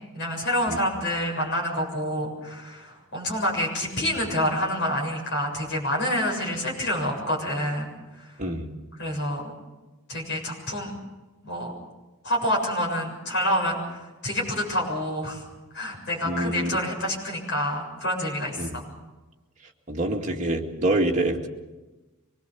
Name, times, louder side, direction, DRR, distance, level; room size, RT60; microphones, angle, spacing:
voice 1, 0.1-7.9 9.0-9.5 10.1-10.9 11.4-11.7 12.2-13.8 14.2-15.4 15.7-18.7, equal, 50° left, -1 dB, 7.2 m, -27 dB
voice 2, 16.2-16.7 18.6-18.8 19.9-21.5, right 1 dB, 35° right, -1 dB, 2.3 m, -26 dB
25.0 x 19.5 x 7.1 m, 1.1 s
head